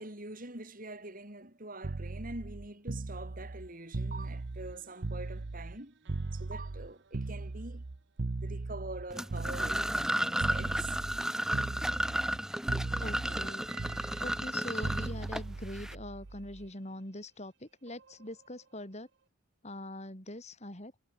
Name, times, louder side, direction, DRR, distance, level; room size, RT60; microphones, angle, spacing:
voice 1, 0.0-7.8 8.4-10.9, right 2 dB, 45° right, 6.8 m, -45 dB
sound 1, 1.8-5.8 6.1-10.1 10.4-11.2 11.5-12.4 12.7-16.7 17.9-18.1, right 2 dB, 60° right, 0.8 m, -38 dB
sound 2, 9.1-16.0, right 1 dB, 5° right, 0.4 m, -33 dB
voice 2, 13.0-13.7 14.0-19.1 19.6-20.9, left 1 dB, 35° left, 6.2 m, -43 dB
head